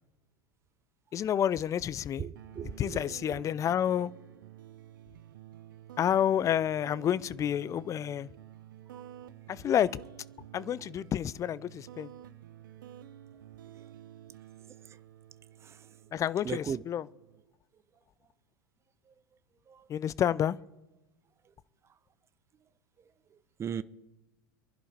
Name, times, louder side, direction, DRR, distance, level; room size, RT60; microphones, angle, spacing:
voice 1, 1.1-2.3 2.8-4.1 6.0-8.3 9.5-10.0 10.5-12.1 16.1-17.0 19.9-20.6, left 10 dB, 30° left, 0.5 m, -29 dB
voice 2, 2.2-3.4 8.9-9.0 13.7-13.8 14.7-15.0 15.6-16.1 16.4-16.8 19.1-19.2 19.7-19.9 21.4-21.5 23.0-23.8, right 7 dB, 25° right, 0.6 m, -40 dB
sound 1, 2.3-17.4, right 11 dB, 70° right, 0.6 m, -51 dB
26.5 x 11.0 x 3.5 m
hypercardioid pair, 85°, 11 cm